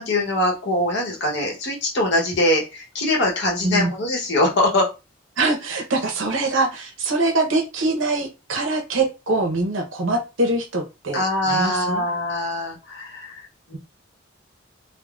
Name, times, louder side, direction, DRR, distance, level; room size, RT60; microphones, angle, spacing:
voice 1, 0.0-4.9 11.1-13.4 13.7-13.8, left 1 dB, 60° left, -1 dB, 1.0 m, -22 dB
voice 2, 5.4-12.0, right 2 dB, 75° right, 3 dB, 0.8 m, -23 dB
3.6 x 2.1 x 2.4 m, 0.28 s
head